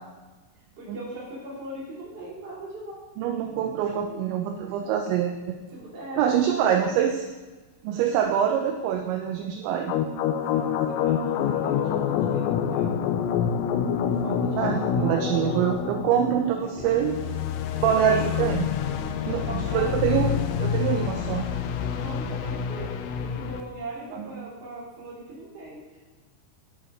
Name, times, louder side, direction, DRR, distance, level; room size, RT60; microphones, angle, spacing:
voice 1, 0.8-3.0 4.8-5.1 5.7-6.8 10.2-13.3 14.2-15.4 17.6-18.3 19.2-20.0 22.0-26.0, right 1 dB, 35° right, -7 dB, 3.4 m, -40 dB
voice 2, 3.2-5.6 6.2-7.3 7.8-9.9 14.6-17.2 17.8-18.7 19.3-21.5 24.1-24.3, right 9 dB, 80° right, 4 dB, 2.7 m, -25 dB
sound 1, 9.9-23.6, left 8 dB, 85° left, 3.3 m, -27 dB
10.0 x 6.2 x 4.9 m, 1.2 s
omnidirectional pair, 5.8 m